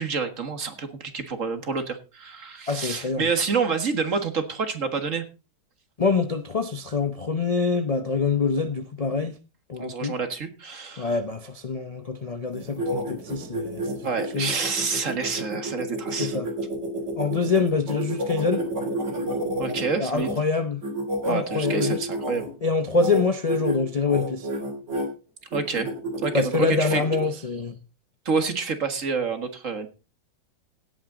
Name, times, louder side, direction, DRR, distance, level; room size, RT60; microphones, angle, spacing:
voice 1, 0.0-5.2 9.8-11.2 14.0-16.4 19.6-20.4 21.3-22.5 25.5-25.9 26.2-27.0 28.3-29.9, right 5 dB, 45° right, 2.0 m, -28 dB
voice 2, 2.7-3.3 6.0-9.3 9.7-10.1 11.0-13.9 14.3-14.5 16.2-16.5 17.2-18.6 19.9-20.8 21.3-22.0 22.6-24.5 26.3-27.8, left 4 dB, 50° left, 0.4 m, -25 dB
sound 1, 12.5-20.3 20.8-22.5 22.9-23.2 23.5-23.8 24.1-25.1 25.5-27.3, right 1 dB, 70° right, 4.1 m, -30 dB
17.0 x 9.0 x 3.9 m
omnidirectional pair, 1.9 m